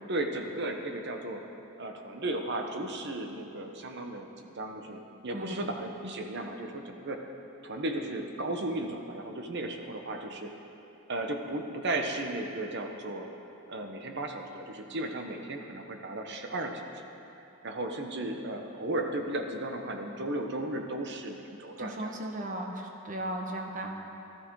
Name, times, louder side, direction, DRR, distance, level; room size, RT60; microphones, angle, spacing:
voice 1, 0.1-1.4 1.8-7.3 7.6-10.5 11.1-13.3 13.7-17.0 17.6-22.1, right 1 dB, 55° right, 4 dB, 1.1 m, -35 dB
voice 2, 5.3-5.7 21.8-23.9, right 1 dB, 40° right, 1 dB, 1.4 m, -36 dB
15.0 x 13.0 x 4.8 m, 2.9 s
head